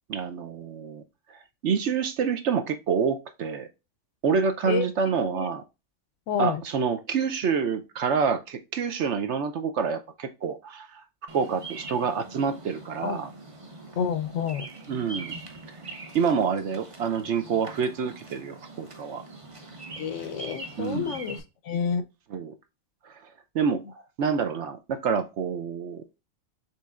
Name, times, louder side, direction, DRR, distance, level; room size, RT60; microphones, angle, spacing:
voice 1, 0.1-1.0 1.3-3.7 4.2-5.6 6.4-11.0 11.3-13.3 14.9-15.3 15.7-15.8 16.1-19.2 20.8-21.2 22.3-22.5 23.0-23.2 23.5-23.8 24.2-26.0, right 6 dB, 65° right, 0.9 m, -27 dB
voice 2, 4.7-5.5 6.3-6.6 13.0-13.2 14.0-14.7 20.0-22.0, left 7 dB, 70° left, 0.9 m, -29 dB
Bird vocalization bird call bird song, 11.3-21.4, right 2 dB, 30° right, 0.7 m, -43 dB
6.8 x 3.2 x 2.4 m
omnidirectional pair, 1.4 m